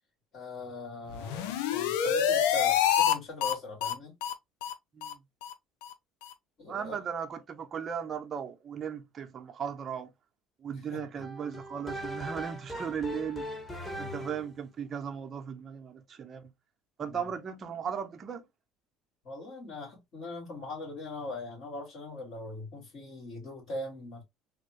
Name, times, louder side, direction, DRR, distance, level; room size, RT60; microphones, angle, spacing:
voice 1, 0.3-4.1 6.6-7.0 10.9-11.0 14.0-14.2 17.1-17.3 19.2-24.2, left 2 dB, 60° left, 2.2 m, -41 dB
sound 1, 1.1-3.1 3.4-3.5 3.8-3.9 4.2-4.3 4.6-4.7 5.0-5.1 5.4-5.5 5.8-5.9 6.2-6.3, left 9 dB, 80° left, 0.5 m, -27 dB
voice 2, 6.7-10.1 10.6-13.4 14.0-16.5 17.0-18.4, right 7 dB, 40° right, 0.7 m, -37 dB
sound 2, 11.2-14.6, equal, 10° left, 1.1 m, -39 dB
3.5 x 2.1 x 3.1 m
supercardioid pair, 85°, 0 cm